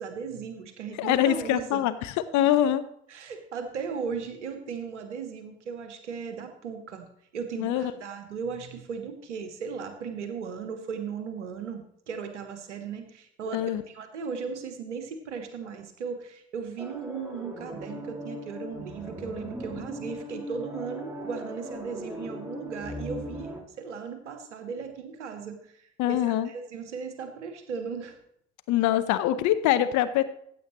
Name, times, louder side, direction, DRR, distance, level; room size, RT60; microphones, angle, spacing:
voice 1, 0.0-1.9 3.1-7.1 7.3-28.2, right 6 dB, 80° right, 8 dB, 1.1 m, -37 dB
voice 2, 1.0-2.8 7.6-7.9 13.5-13.8 26.0-26.5 28.7-30.2, left 12 dB, 55° left, 12 dB, 0.7 m, -24 dB
sound 1, 16.8-23.6, equal, 5° right, 2.3 m, -39 dB
14.5 x 8.2 x 3.0 m, 0.69 s
figure-of-eight pair, 45°, 35 cm